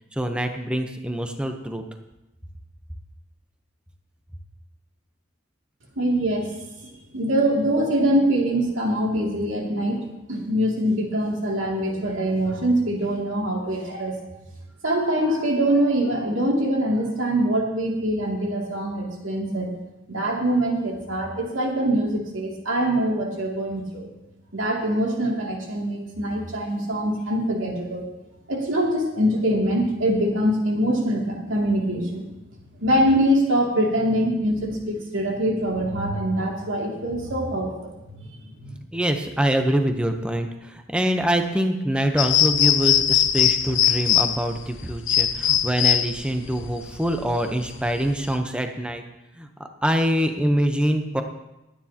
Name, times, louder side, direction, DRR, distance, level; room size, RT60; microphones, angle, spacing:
voice 1, 0.1-1.8 38.9-49.0 49.4-51.2, equal, 5° right, 5 dB, 0.8 m, -24 dB
voice 2, 6.0-6.5 7.1-10.0 10.3-14.2 14.8-19.7 20.1-24.1 24.5-28.0 28.5-32.2 32.8-38.3, right 1 dB, 80° right, -1 dB, 2.7 m, -23 dB
sound 1, 42.2-48.3, left 10 dB, 75° left, 0.8 m, -21 dB
22.0 x 9.5 x 2.9 m, 0.97 s
head